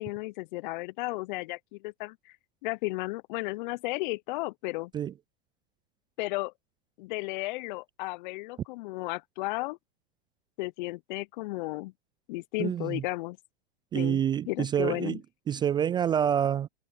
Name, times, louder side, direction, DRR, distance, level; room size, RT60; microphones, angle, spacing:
voice 1, 0.0-2.3 2.6-4.9 6.2-6.5 7.0-9.8 10.6-11.9 12.3-13.4 13.9-15.2, left 22 dB, 50° left, 0.6 m, -34 dB
voice 2, 12.6-13.0 13.9-15.2 15.5-16.7, right 9 dB, 15° right, 0.3 m, -27 dB
hypercardioid pair, 110°, 30 cm